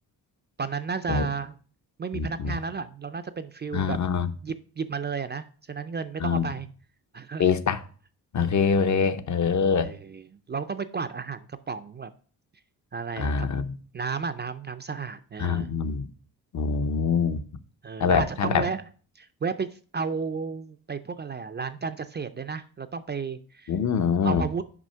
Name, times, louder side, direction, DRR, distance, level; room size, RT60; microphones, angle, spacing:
voice 1, 0.6-1.5 2.0-4.0 4.4-6.7 7.1-7.4 9.8-12.1 12.9-13.5 13.9-15.8 17.8-18.8 19.2-19.7 19.9-23.7 24.2-24.6, right 5 dB, 30° right, 0.4 m, -33 dB
voice 2, 2.1-2.6 3.7-4.3 6.2-6.5 7.4-7.8 8.3-10.0 13.2-13.8 15.4-16.1 16.5-17.4 18.0-18.7 23.7-24.5, left 6 dB, 50° left, 0.7 m, -24 dB
6.1 x 5.0 x 5.5 m
cardioid pair, 100°, 38 cm